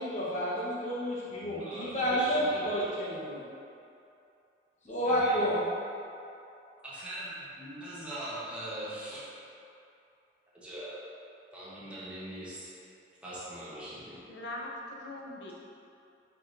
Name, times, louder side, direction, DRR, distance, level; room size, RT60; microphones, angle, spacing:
voice 1, 0.0-3.4 4.8-5.6, equal, 40° left, -8 dB, 1.0 m, -30 dB
voice 2, 1.4-2.9 5.0-5.4 6.8-7.3 7.6-9.2 10.5-11.0 11.5-12.7 13.2-14.3, right 1 dB, 5° right, -10 dB, 0.9 m, -41 dB
voice 3, 14.3-15.5, left 1 dB, 90° left, -2 dB, 0.6 m, -41 dB
4.6 x 4.4 x 2.6 m, 2.7 s
head